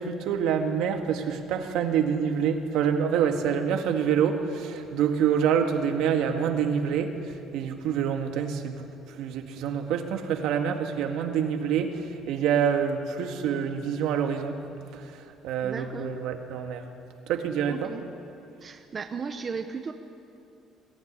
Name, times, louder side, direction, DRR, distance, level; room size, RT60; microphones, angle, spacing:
voice 1, 0.0-14.6 14.9-16.8 17.3-17.9, right 7 dB, 65° right, 5 dB, 1.9 m, -27 dB
voice 2, 15.6-16.1 17.7-18.0 18.6-19.9, right 5 dB, 25° right, 6 dB, 0.8 m, -35 dB
21.5 x 15.5 x 9.9 m, 2.6 s
cardioid pair, 180°, 0 cm